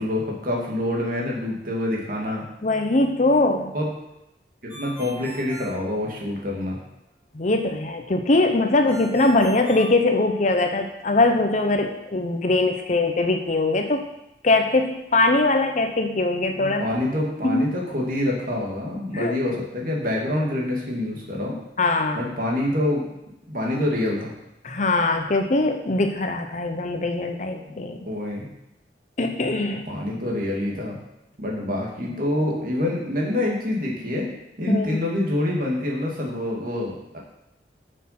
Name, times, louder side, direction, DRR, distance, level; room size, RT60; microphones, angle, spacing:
voice 1, 0.0-2.4 3.7-3.9 4.6-6.8 16.5-21.6 22.1-23.1 23.5-24.3 28.1-28.5 29.9-31.0 31.4-34.3 34.6-37.2, left 1 dB, 50° right, -2 dB, 2.2 m, -26 dB
voice 2, 2.6-3.7 7.3-14.0 14.4-16.8 17.4-17.7 19.1-19.3 21.8-22.2 24.6-28.0 29.2-29.8 34.7-35.0, left 2 dB, 45° left, 5 dB, 0.7 m, -21 dB
Ringtone, 4.7-6.6 8.9-10.8, right 1 dB, 10° right, 4.1 m, -41 dB
8.0 x 6.5 x 5.8 m, 0.89 s
head